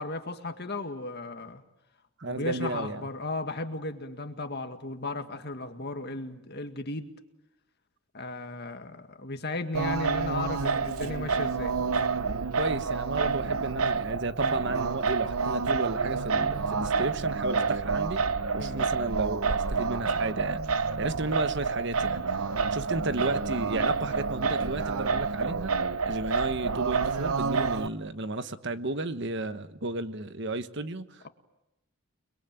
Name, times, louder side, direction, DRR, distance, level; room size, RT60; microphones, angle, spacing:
voice 1, 0.0-1.6 2.3-7.1 8.1-11.7 18.6-18.9, left 2 dB, 45° left, 7 dB, 2.0 m, -35 dB
voice 2, 2.2-3.1 12.5-18.2 18.5-25.7 26.0-31.2, right 2 dB, 55° right, 11 dB, 1.2 m, -33 dB
Singing, 9.7-27.9, right 5 dB, 80° right, 0.9 m, -28 dB
30.0 x 22.0 x 9.1 m, 0.94 s
head